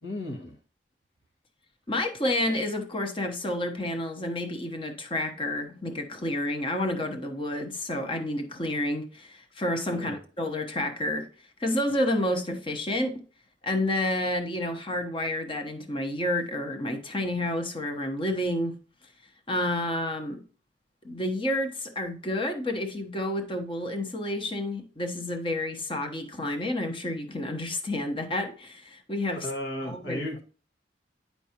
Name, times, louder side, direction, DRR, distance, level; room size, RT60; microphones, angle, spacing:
voice 1, 0.0-0.6 9.9-10.2 29.3-30.4, left 1 dB, 80° left, 1.7 m, -35 dB
voice 2, 1.9-11.3 11.6-13.2 13.6-18.8 19.5-20.4 21.0-29.5 29.8-30.2, left 1 dB, 30° left, 1.0 m, -30 dB
9.8 x 4.6 x 2.9 m
head